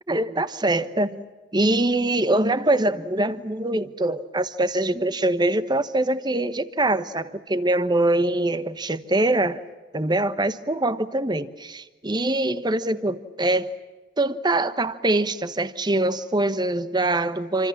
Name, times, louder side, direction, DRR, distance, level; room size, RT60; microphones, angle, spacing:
voice 1, 0.1-1.3 1.5-9.6 9.9-13.7 14.2-17.7, right 2 dB, 25° right, 1.1 m, -23 dB
27.5 x 26.0 x 7.4 m
head